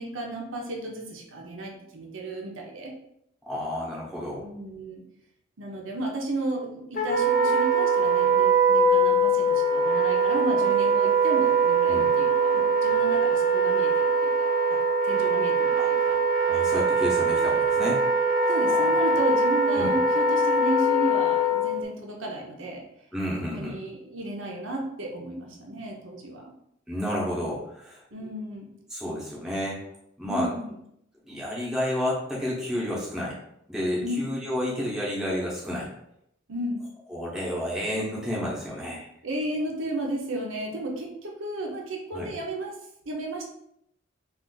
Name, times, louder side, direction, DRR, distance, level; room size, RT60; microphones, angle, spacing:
voice 1, 0.0-2.9 4.4-5.0 5.6-14.8 15.0-16.2 18.5-22.8 23.5-26.5 28.1-28.7 30.2-30.7 34.0-34.2 36.5-36.8 39.2-42.8 43.1-43.5, right 1 dB, 75° right, 0 dB, 0.7 m, -33 dB
voice 2, 3.5-4.5 11.9-12.1 15.8-15.9 16.5-18.0 18.7-18.9 19.7-19.9 23.1-23.8 26.9-28.0 28.9-29.8 30.2-30.5 31.3-33.4 33.7-35.9 37.1-39.1 42.1-42.3, left 1 dB, 5° right, -6 dB, 0.7 m, -30 dB
Wind instrument woodwind instrument, 7.0-21.8, right 3 dB, 45° left, 0.5 m, -22 dB
2.4 x 2.4 x 3.8 m, 0.76 s
head